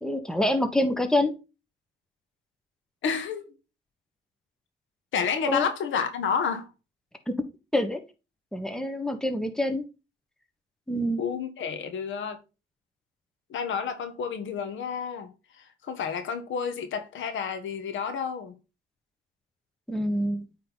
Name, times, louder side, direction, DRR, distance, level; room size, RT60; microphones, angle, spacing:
voice 1, 0.0-1.3 5.5-5.6 7.7-8.0 8.5-9.9 10.9-11.2 19.9-20.5, left 1 dB, 5° left, 1.3 m, -26 dB
voice 2, 3.0-3.5 5.1-6.7 11.2-12.4 13.5-18.5, left 6 dB, 75° left, 1.4 m, -30 dB
8.8 x 3.8 x 3.9 m
cardioid pair, 90°, 20 cm